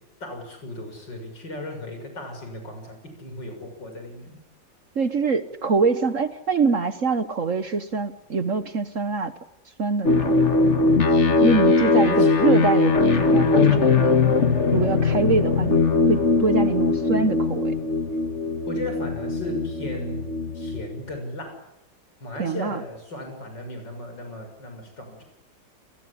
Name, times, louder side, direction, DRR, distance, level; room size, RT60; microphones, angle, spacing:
voice 1, 0.2-4.4 12.1-12.4 18.7-21.6 22.2-25.2, left 1 dB, 75° left, 5 dB, 7.4 m, -36 dB
voice 2, 4.9-9.3 9.8-10.4 11.4-14.3 14.7-17.7 22.4-22.8, right 4 dB, 45° right, 12 dB, 1.5 m, -24 dB
sound 1, 10.0-21.0, left 3 dB, 40° left, 1.9 m, -20 dB
29.0 x 22.0 x 8.6 m, 0.85 s
omnidirectional pair, 2.0 m